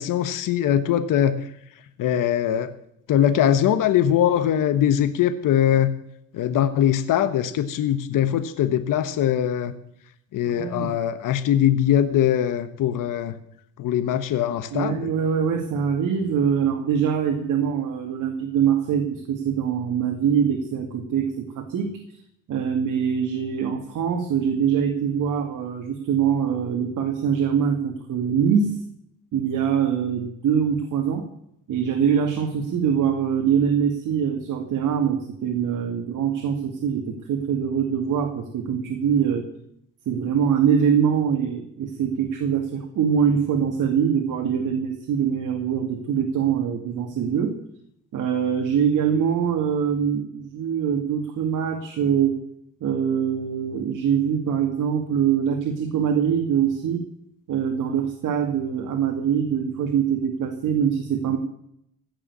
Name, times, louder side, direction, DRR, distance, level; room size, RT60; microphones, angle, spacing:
voice 1, 0.0-1.4 2.0-2.7 3.1-5.9 6.3-9.7 10.3-13.3 13.8-15.1, left 10 dB, 70° left, 10 dB, 1.3 m, -21 dB
voice 2, 10.5-10.9 14.7-21.9 22.5-28.8 29.3-31.3 31.7-39.4 40.1-47.5 48.1-52.4 52.8-57.0 57.5-61.4, right 7 dB, 65° right, 3 dB, 2.4 m, -23 dB
17.0 x 6.9 x 9.6 m, 0.73 s
cardioid pair, 110°, 33 cm